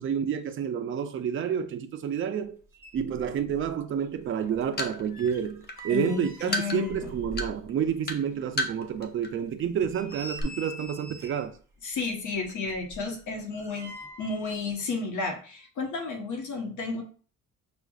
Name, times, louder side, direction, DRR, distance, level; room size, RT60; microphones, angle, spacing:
voice 1, 0.0-2.6 2.9-11.5, right 8 dB, 40° right, 0.4 m, -29 dB
sound 1, 2.4-2.5 2.7-3.7 4.0-7.9 8.3-8.4 8.9-9.0 9.6-11.6 12.4-14.4 14.7-14.8, right 1 dB, 10° right, 0.8 m, -44 dB
sound 2, 4.4-9.3 9.6-9.8 10.1-10.4, left 1 dB, 30° left, 0.5 m, -32 dB
voice 2, 5.9-7.1 11.8-13.9 14.2-17.0, left 4 dB, 65° left, 1.1 m, -32 dB
6.1 x 2.4 x 2.3 m
cardioid pair, 140°, 32 cm